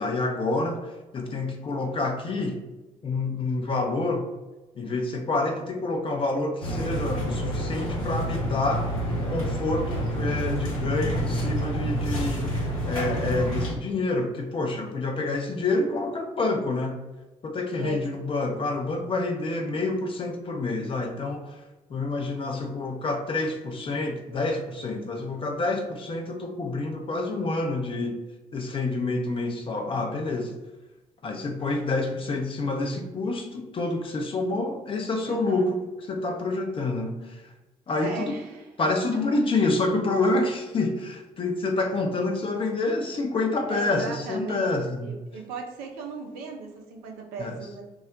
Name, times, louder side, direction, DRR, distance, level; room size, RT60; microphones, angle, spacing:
voice 1, 0.0-2.6 3.0-4.2 4.8-8.9 9.3-12.5 12.9-17.0 17.4-21.6 21.9-28.2 28.5-30.5 31.2-35.8 36.1-37.4 37.9-38.4 38.8-45.1 47.4-47.6, left 2 dB, 30° left, 3 dB, 0.5 m, -28 dB
sound 1, 6.6-13.7, equal, 85° left, 0.6 m, -28 dB
voice 2, 35.2-35.7 38.0-38.7 39.1-39.4 43.7-44.7 45.0-47.8, right 4 dB, 65° right, 1 dB, 0.5 m, -37 dB
2.3 x 2.0 x 3.7 m, 1.1 s
figure-of-eight pair, 40°, 17 cm